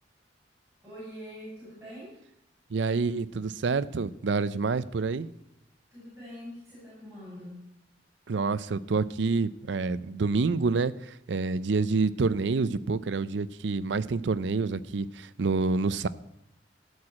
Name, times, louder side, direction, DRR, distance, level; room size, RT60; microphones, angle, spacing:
voice 1, 0.8-2.1 5.9-7.6, equal, 15° right, -9 dB, 5.0 m, -44 dB
voice 2, 2.7-5.3 8.3-16.1, right 4 dB, 75° right, 16 dB, 0.5 m, -28 dB
13.5 x 4.8 x 8.5 m, 0.83 s
head